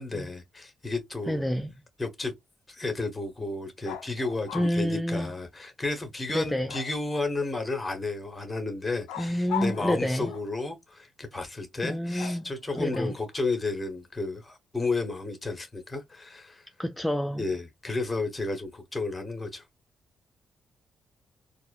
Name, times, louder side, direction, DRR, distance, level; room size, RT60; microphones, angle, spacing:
voice 1, 0.0-1.4 2.0-2.3 2.7-16.6 17.4-19.6, left 3 dB, 25° left, 1.6 m, -32 dB
voice 2, 1.3-1.7 4.5-5.3 6.3-6.7 9.2-10.3 11.8-12.5 12.7-13.1 16.8-17.4, equal, 5° left, 0.5 m, -28 dB
sound 1, 3.8-4.8 6.7-7.3 9.1-10.6 12.2-13.3, left 9 dB, 75° left, 0.5 m, -39 dB
4.1 x 2.7 x 2.4 m
hypercardioid pair, 40°, 0 cm